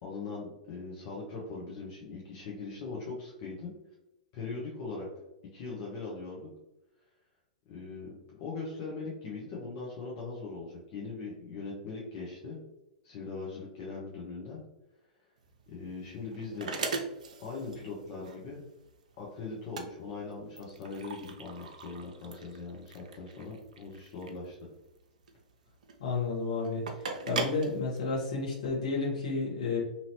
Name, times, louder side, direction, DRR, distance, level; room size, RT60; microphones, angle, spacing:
voice 1, 0.0-3.7 4.3-5.1 5.5-6.5 7.7-12.6 13.0-14.6 15.7-16.7 17.4-18.6 19.2-24.6, left 4 dB, 45° left, -4 dB, 0.8 m, -40 dB
sound 1, 15.4-28.7, right 4 dB, 65° right, 0.4 m, -40 dB
voice 2, 26.0-26.8 27.3-29.8, left 4 dB, 65° left, -3 dB, 1.2 m, -31 dB
2.9 x 2.7 x 2.9 m, 0.94 s
figure-of-eight pair, 100°, 4 cm